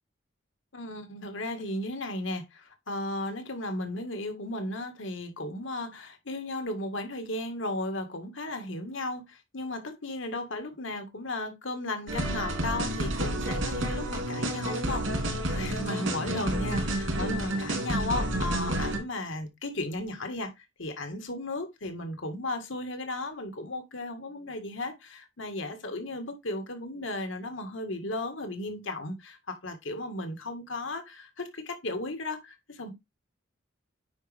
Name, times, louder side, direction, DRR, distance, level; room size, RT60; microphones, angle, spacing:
voice 1, 0.7-20.5 20.8-32.9, left 2 dB, 75° left, 1.9 m, -35 dB
sound 1, 12.1-19.0, right 1 dB, 80° right, 3.1 m, -30 dB
9.4 x 5.1 x 3.5 m
head